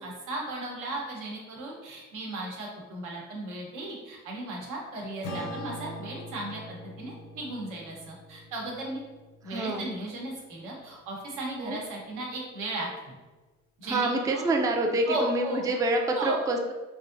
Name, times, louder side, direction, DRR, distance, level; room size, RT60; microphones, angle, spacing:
voice 1, 0.0-9.0 9.4-13.2 13.8-14.5 15.1-15.6 16.1-16.4, right 2 dB, 85° right, -2 dB, 1.0 m, -36 dB
Acoustic guitar / Strum, 5.2-9.9, left 1 dB, 75° left, 0.6 m, -42 dB
voice 2, 9.4-9.9 11.6-11.8 13.8-16.7, right 2 dB, 10° right, 2 dB, 0.3 m, -27 dB
3.0 x 2.6 x 2.5 m, 1.2 s
cardioid pair, 90°, 30 cm